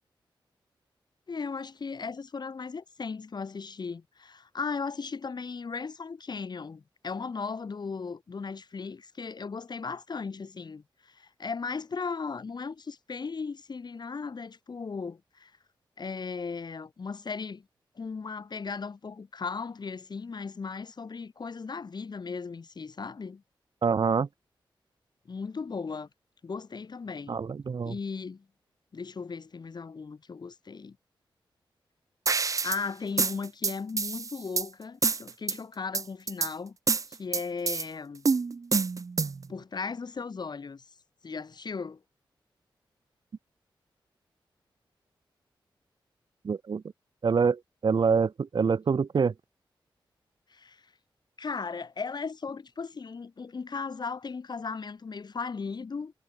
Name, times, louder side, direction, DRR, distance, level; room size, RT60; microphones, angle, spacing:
voice 1, 1.3-15.5 16.0-17.6 18.0-23.4 25.3-26.1 26.4-27.4 27.8-28.4 28.9-31.0 32.6-36.8 37.1-38.3 39.5-40.8 41.2-42.0 50.5-50.8 51.4-56.1, left 5 dB, 55° left, 7.9 m, -37 dB
voice 2, 23.8-24.3 27.3-27.9 46.4-46.8 47.2-49.3, right 5 dB, 60° right, 1.8 m, -25 dB
sound 1, 32.3-32.8 33.2-34.7 35.0-35.6 35.9-36.5 36.9-37.8 38.3-39.5, right 4 dB, 40° right, 0.6 m, -27 dB
cardioid pair, 75°, 9 cm